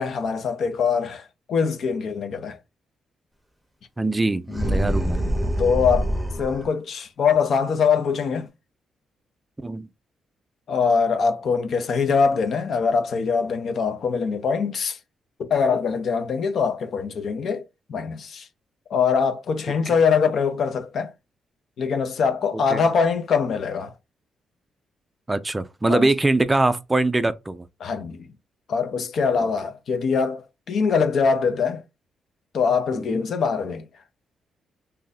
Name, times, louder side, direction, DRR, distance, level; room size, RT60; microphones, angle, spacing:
voice 1, 0.0-2.6 5.6-6.1 6.4-8.5 10.7-15.0 15.4-18.5 18.9-21.1 21.8-23.9 25.9-26.1 27.8-28.3 28.7-31.8 32.5-33.9, left 5 dB, 60° left, 0.6 m, -23 dB
voice 2, 4.0-5.2 9.6-9.9 19.9-20.0 22.5-22.9 25.3-27.7 29.4-29.5 32.9-33.2, right 2 dB, 15° right, 0.4 m, -23 dB
sound 1, 4.5-6.7, equal, ahead, 0.8 m, -25 dB
2.7 x 2.6 x 4.0 m
cardioid pair, 95°, 0 cm